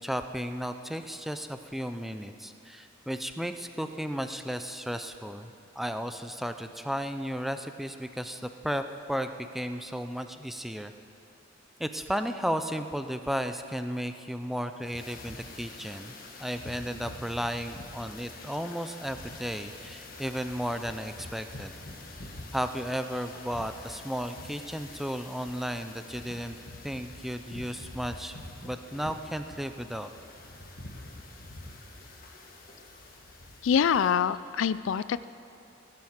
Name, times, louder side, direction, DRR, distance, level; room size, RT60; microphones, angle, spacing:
voice 1, 0.0-8.8 9.1-10.9 11.8-16.1 16.4-21.7 22.5-26.6 26.8-28.4 28.6-30.1, equal, ahead, 8 dB, 0.4 m, -34 dB
sound 1, 14.8-34.1, left 2 dB, 45° left, 1.5 m, -46 dB
voice 2, 33.6-35.3, left 7 dB, 70° left, 16 dB, 0.3 m, -25 dB
17.0 x 7.7 x 7.3 m, 2.7 s
head